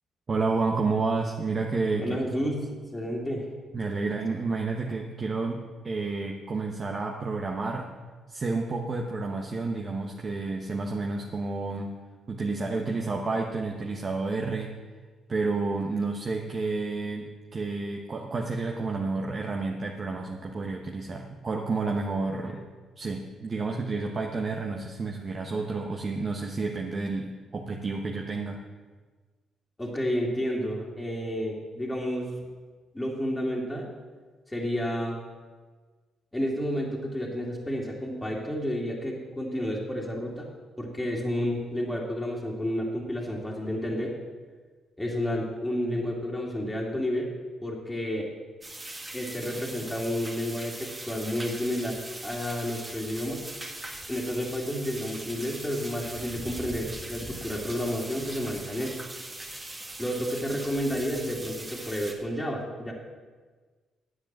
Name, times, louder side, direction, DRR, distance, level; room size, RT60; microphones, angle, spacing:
voice 1, 0.3-2.2 3.7-7.9 8.3-11.9 12.3-14.7 15.3-22.6 23.0-28.6, right 3 dB, 35° right, 1 dB, 1.1 m, -30 dB
voice 2, 2.0-3.5 29.8-32.3 32.9-33.9 34.5-35.2 36.3-40.5 40.8-44.1 45.0-47.3 47.6-48.3 49.1-53.4 54.1-58.9 60.0-62.9, equal, 10° left, -2 dB, 2.4 m, -31 dB
sound 1, 48.6-62.1, right 2 dB, 20° right, 1.8 m, -40 dB
10.0 x 7.9 x 7.4 m, 1.4 s
cardioid pair, 90°, 0 cm